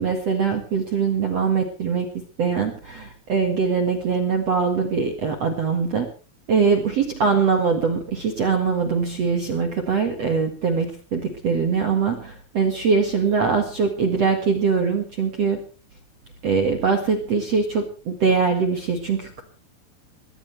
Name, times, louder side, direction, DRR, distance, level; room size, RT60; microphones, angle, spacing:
voice 1, 0.0-2.1 2.4-6.1 6.5-15.6 16.4-19.4, right 5 dB, 60° right, 4 dB, 1.7 m, -22 dB
21.5 x 17.5 x 3.4 m, 0.37 s
omnidirectional pair, 5.7 m